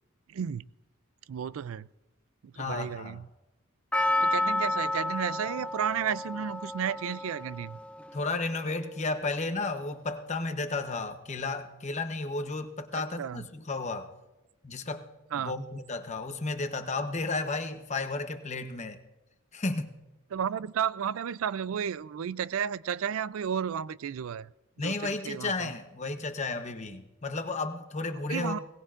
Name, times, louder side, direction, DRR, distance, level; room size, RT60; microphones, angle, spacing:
voice 1, 0.3-0.6 1.3-1.9 2.4-3.3 4.0-7.8 12.9-13.5 15.3-15.6 20.3-24.5 24.8-25.7 28.3-28.6, right 8 dB, 80° right, 0.4 m, -33 dB
voice 2, 2.6-3.2 8.1-14.1 14.6-15.1 15.3-19.0 19.5-19.9 24.8-28.6, left 3 dB, 35° left, 0.9 m, -33 dB
Percussion, 3.9-8.3 8.5-8.6, left 2 dB, 5° left, 0.5 m, -31 dB
21.0 x 18.5 x 2.5 m
head